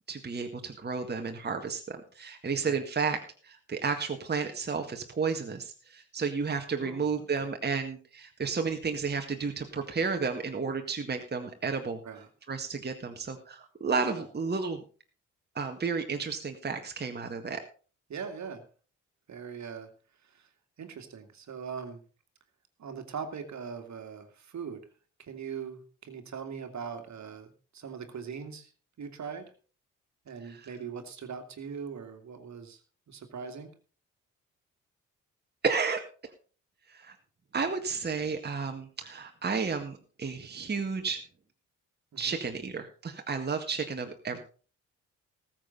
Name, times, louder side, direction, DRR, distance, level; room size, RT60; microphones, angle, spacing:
voice 1, 0.1-12.0 12.5-14.8 15.5-17.6 30.5-30.7 35.6-36.0 36.9-37.1 37.5-41.2 42.2-44.4, right 5 dB, 25° right, 4 dB, 1.8 m, -32 dB
voice 2, 6.8-7.5 12.0-12.3 14.1-14.3 18.1-18.6 19.3-19.9 20.2-20.5 20.8-22.0 22.8-24.8 25.2-28.7 29.0-29.4 30.2-32.8 33.1-33.7 42.1-42.4 44.3-44.4, right 6 dB, 50° right, 7 dB, 2.4 m, -41 dB
19.5 x 7.6 x 4.0 m, 0.38 s
figure-of-eight pair, 40°, 37 cm